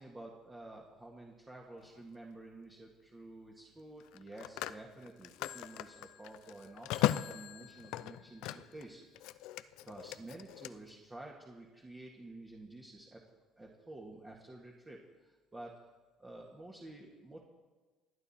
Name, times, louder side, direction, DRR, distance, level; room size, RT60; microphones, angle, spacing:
voice 1, 0.0-9.0 9.8-13.2 13.6-15.7 16.2-17.4, right 2 dB, 20° right, -2 dB, 1.9 m, -50 dB
Telephone, 1.8-2.0 4.0-8.8 9.1-10.7, left 15 dB, 80° left, 0.5 m, -38 dB
27.5 x 9.4 x 4.4 m, 1.3 s
cardioid pair, 100°, 0 cm